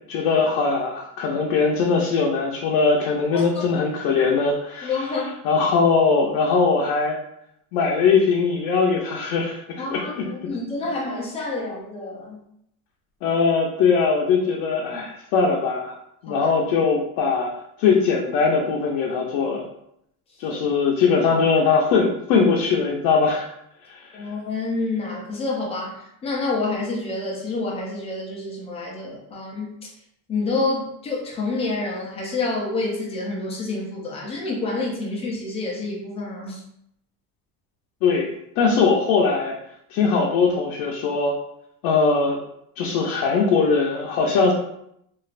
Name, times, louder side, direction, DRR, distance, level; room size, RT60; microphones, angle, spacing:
voice 1, 0.1-7.2 7.7-10.5 13.2-15.9 16.2-17.5 17.8-19.6 20.4-23.5 23.8-24.2 38.0-39.5 39.9-41.4 41.8-42.4 42.8-44.5, left 5 dB, 75° left, -1 dB, 0.6 m, -21 dB
voice 2, 4.8-5.4 9.8-12.4 16.3-16.5 20.5-20.6 24.1-29.8 30.3-36.6, left 3 dB, 15° left, -2 dB, 0.3 m, -28 dB
3.1 x 2.4 x 2.4 m, 0.76 s
cardioid pair, 175°, 37 cm